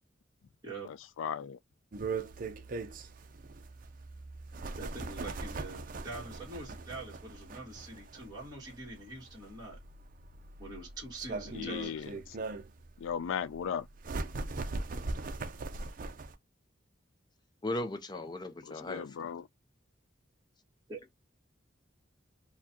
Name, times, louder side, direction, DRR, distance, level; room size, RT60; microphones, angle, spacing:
voice 1, 0.9-1.6 11.5-12.4 13.0-13.9 18.6-19.5, left 7 dB, 85° left, 0.3 m, -37 dB
sound 1, 1.9-16.3, right 3 dB, 45° right, 0.5 m, -40 dB
voice 2, 4.8-9.8 10.6-12.0 20.9-21.0, right 2 dB, 20° right, 1.5 m, -44 dB
voice 3, 17.6-19.3, left 2 dB, 20° left, 0.5 m, -37 dB
4.5 x 2.2 x 2.8 m
head